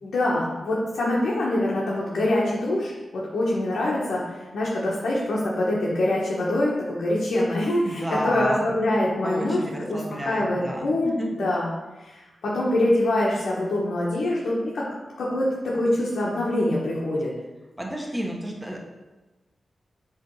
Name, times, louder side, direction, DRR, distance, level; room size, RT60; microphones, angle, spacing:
voice 1, 0.0-4.3 4.5-11.7 12.0-14.8 15.2-17.3, left 1 dB, 90° left, -7 dB, 1.4 m, -24 dB
voice 2, 7.8-8.7 9.2-11.3 17.8-18.8, equal, 5° right, -2 dB, 1.4 m, -31 dB
7.9 x 3.4 x 4.8 m, 1.1 s
wide cardioid pair, 80°, 0 cm